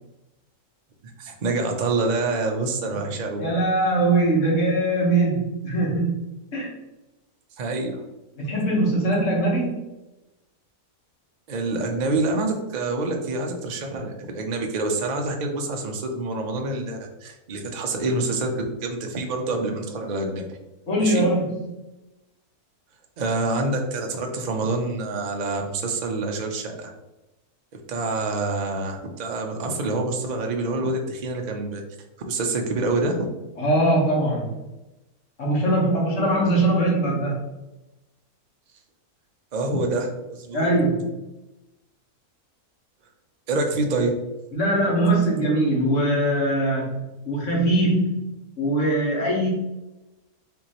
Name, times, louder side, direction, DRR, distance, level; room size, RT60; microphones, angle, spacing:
voice 1, 1.2-3.4 7.6-8.0 11.5-20.5 21.0-21.3 23.2-26.9 27.9-31.8 32.3-33.2 39.5-40.7 43.5-44.1, right 2 dB, 80° right, 2 dB, 0.4 m, -26 dB
voice 2, 3.4-6.2 6.5-6.7 8.4-9.7 20.9-21.7 33.6-34.6 35.4-37.4 40.5-41.2 44.5-49.5, right 1 dB, 55° left, -3 dB, 1.6 m, -22 dB
5.4 x 3.0 x 2.9 m, 1.0 s
omnidirectional pair, 1.6 m